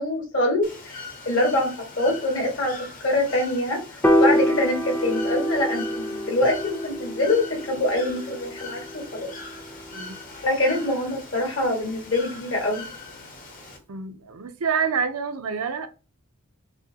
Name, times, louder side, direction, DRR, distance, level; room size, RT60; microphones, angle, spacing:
voice 1, 0.0-9.3 10.4-12.8, left 1 dB, 55° left, 1.7 m, -25 dB
Bird / Water, 0.6-13.8, left 3 dB, 40° left, 1.0 m, -41 dB
Piano, 4.0-10.3, equal, 10° left, 0.3 m, -26 dB
voice 2, 13.9-15.9, right 6 dB, 75° right, 0.6 m, -27 dB
6.1 x 2.2 x 2.8 m
head